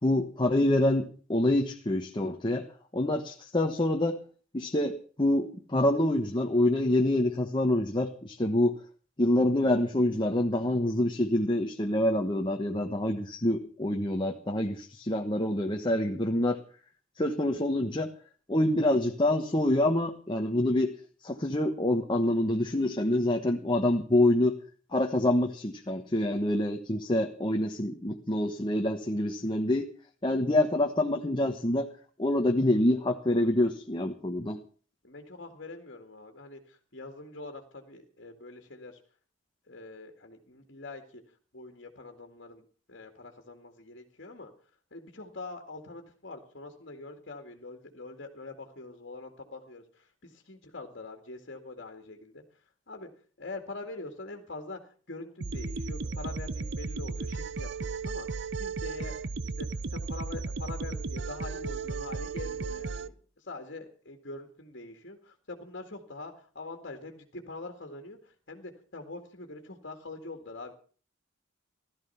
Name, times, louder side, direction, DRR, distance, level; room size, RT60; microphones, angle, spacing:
voice 1, 0.0-2.7 2.9-4.2 4.5-8.8 9.2-16.6 17.2-18.1 18.5-21.0 21.2-24.6 24.9-29.9 30.2-31.9 32.2-34.6, left 1 dB, 25° left, 2 dB, 1.2 m, -26 dB
voice 2, 35.0-39.0 39.7-41.2 41.5-44.5 44.9-52.4 52.9-53.1 53.4-58.3 58.6-59.2 59.4-63.1 63.4-70.7, left 2 dB, 55° left, 4 dB, 2.2 m, -44 dB
sound 1, 55.4-63.1, right 4 dB, 60° right, 0.8 m, -35 dB
17.0 x 13.0 x 5.7 m, 0.41 s
head